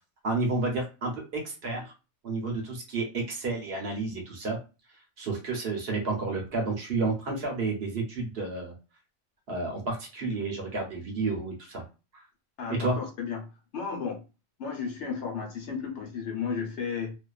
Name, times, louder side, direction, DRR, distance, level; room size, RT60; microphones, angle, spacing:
voice 1, 0.2-1.9 2.2-4.6 5.2-8.7 9.5-11.8 12.1-12.2 12.8-13.0, right 3 dB, 60° right, 0.9 m, -31 dB
voice 2, 12.6-13.4 13.7-14.2 14.6-17.1, left 6 dB, 70° left, 0.9 m, -33 dB
2.4 x 2.3 x 2.3 m
omnidirectional pair, 1.3 m